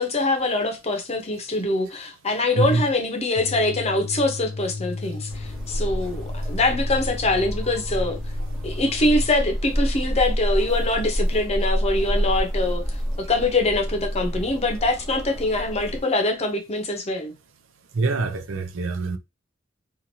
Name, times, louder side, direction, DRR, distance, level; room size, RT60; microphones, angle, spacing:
voice 1, 0.0-8.2 8.6-13.0 13.3-17.3, left 2 dB, 35° left, 0.7 m, -24 dB
voice 2, 2.5-2.9 6.0-6.1 8.4-8.5 17.9-19.2, right 3 dB, 85° right, 0.5 m, -25 dB
sound 1, 3.3-9.3, left 4 dB, 80° left, 0.5 m, -36 dB
sound 2, 5.3-16.0, equal, ahead, 0.7 m, -28 dB
3.0 x 2.5 x 2.7 m
head